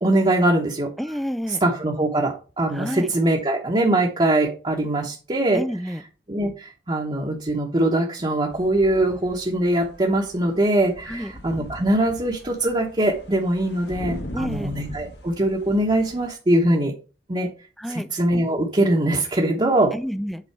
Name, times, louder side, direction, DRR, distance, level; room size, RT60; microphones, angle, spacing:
voice 1, 0.0-0.9 1.5-5.6 6.3-16.9 17.3-17.5 17.9-20.0, right 1 dB, 30° right, 1.0 m, -22 dB
voice 2, 1.0-1.6 2.7-3.1 5.5-6.0 11.1-11.3 14.3-14.7 17.8-18.1 19.9-20.4, equal, ahead, 0.4 m, -29 dB
sound 1, 8.5-16.3, left 1 dB, 70° left, 1.6 m, -39 dB
8.4 x 4.1 x 4.6 m
head